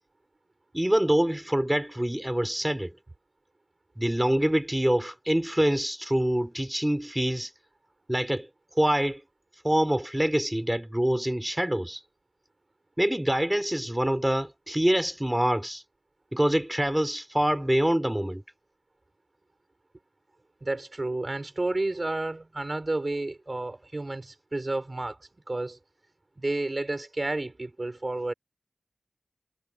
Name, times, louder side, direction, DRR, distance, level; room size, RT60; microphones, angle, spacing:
voice 1, 0.7-2.9 4.0-7.5 8.1-8.5 8.8-9.2 9.6-12.0 13.0-15.8 16.3-18.4, right 1 dB, 10° right, 5.3 m, -25 dB
voice 2, 20.6-25.2 25.5-25.8 26.4-28.3, right 2 dB, 40° right, 7.2 m, -31 dB
cardioid pair, 50°, 0 cm